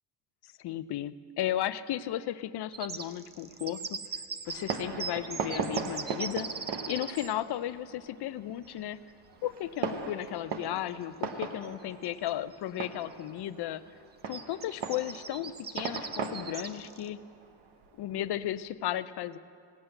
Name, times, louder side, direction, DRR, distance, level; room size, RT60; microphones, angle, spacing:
voice 1, 0.6-4.0 4.5-6.5 6.8-9.0 9.4-13.8 14.3-17.2 18.0-19.4, left 12 dB, 55° left, 15 dB, 0.5 m, -34 dB
sound 1, 2.7-7.3 9.8-9.9 10.2-10.3 11.6-11.7 12.0-12.5 13.0-13.2 14.3-17.1, right 5 dB, 20° right, 0.5 m, -40 dB
Fireworks, 4.5-18.6, right 5 dB, 60° right, 1.0 m, -39 dB
17.0 x 8.0 x 7.7 m, 2.3 s
cardioid pair, 135°, 47 cm